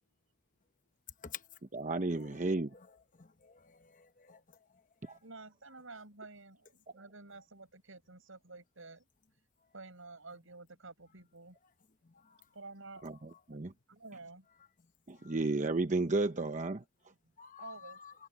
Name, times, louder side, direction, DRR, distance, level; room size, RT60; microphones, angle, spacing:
voice 1, 1.7-2.7 5.0-5.2 13.0-13.7 15.1-16.8, right 2 dB, 40° right, 0.9 m, -33 dB
voice 2, 3.2-4.4 5.0-5.2 15.2-15.3 17.4-18.1, left 8 dB, 40° left, 1.0 m, -49 dB
voice 3, 5.2-9.1 9.7-11.6 12.5-13.0 13.5-13.6 13.9-14.5 17.6-18.0, right 3 dB, 75° right, 6.6 m, -50 dB
head